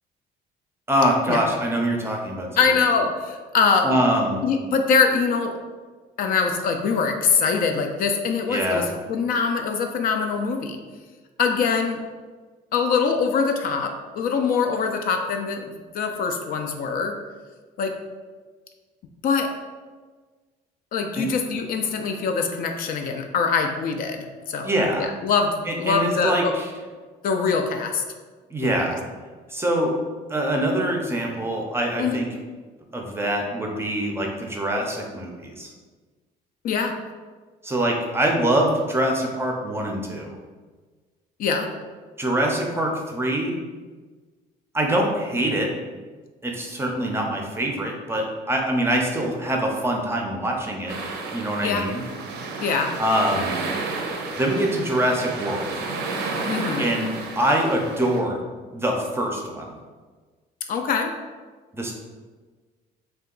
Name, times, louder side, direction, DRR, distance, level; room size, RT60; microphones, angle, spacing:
voice 1, 0.9-2.5 3.8-4.4 8.5-8.9 21.2-21.3 24.6-25.1 25.7-26.7 28.5-29.0 29.5-29.9 30.3-32.3 32.9-35.7 37.6-40.3 42.2-43.6 44.7-45.7 46.4-51.0 51.3-52.0 53.0-53.5 54.4-55.7 56.8-58.4 58.7-59.7 61.7-61.9, right 1 dB, 15° right, 1 dB, 0.5 m, -24 dB
voice 2, 2.6-4.0 4.4-5.5 6.2-10.8 11.4-12.0 12.7-17.2 17.8-18.0 19.2-19.5 20.9-24.7 25.0-26.5 27.2-28.0 28.6-28.7 32.0-32.2 36.6-37.0 41.4-41.7 51.6-51.9 52.6-52.9 56.5-56.9 60.7-61.1, left 5 dB, 60° left, 4 dB, 0.4 m, -23 dB
sound 1, 50.9-58.2, right 3 dB, 85° right, 0.5 m, -31 dB
2.7 x 2.3 x 3.7 m, 1.4 s
cardioid pair, 110°, 17 cm